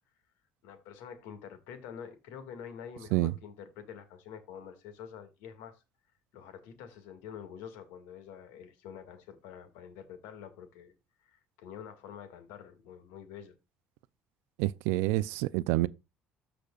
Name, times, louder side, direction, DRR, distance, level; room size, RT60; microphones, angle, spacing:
voice 1, 0.6-5.8 6.3-10.9 11.2-13.5, left 8 dB, 90° left, 2.1 m, -47 dB
voice 2, 14.6-15.9, right 17 dB, 90° right, 0.4 m, -27 dB
14.0 x 5.1 x 2.5 m
cardioid pair, 100°, 4 cm